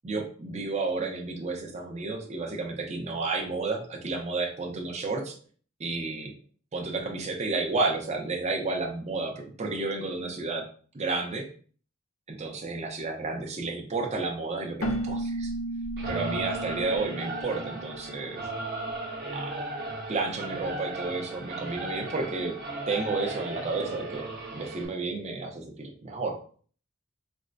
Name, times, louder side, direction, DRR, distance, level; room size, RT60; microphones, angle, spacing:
voice 1, 0.0-5.3 5.8-6.3 6.7-10.6 10.9-11.5 12.3-15.5 16.1-18.4 19.3-19.6 20.1-22.5 22.9-24.3 24.5-26.4, right 3 dB, 35° right, 1 dB, 0.6 m, -31 dB
Keyboard (musical), 14.8-18.4, right 1 dB, 80° left, 0.6 m, -34 dB
Singing / Musical instrument, 16.0-24.9, right 2 dB, 50° right, 0.9 m, -36 dB
4.2 x 2.1 x 2.5 m, 0.43 s
head